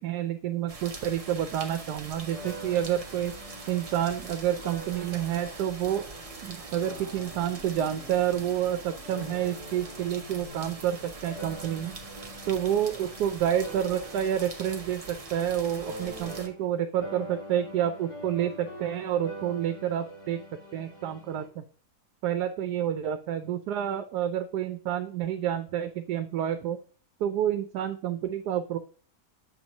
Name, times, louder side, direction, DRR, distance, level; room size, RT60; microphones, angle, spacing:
voice 1, 0.0-3.3 3.7-6.0 6.4-12.0 12.5-20.4 20.7-21.6 22.2-26.8 27.2-28.8, right 10 dB, 85° right, 8 dB, 1.1 m, -29 dB
sound 1, 0.7-16.5, right 3 dB, 35° right, 0.6 m, -43 dB
sound 2, 2.3-16.8 17.0-21.5, right 1 dB, 85° left, 2.0 m, -45 dB
7.0 x 3.1 x 5.1 m, 0.40 s
omnidirectional pair, 1.7 m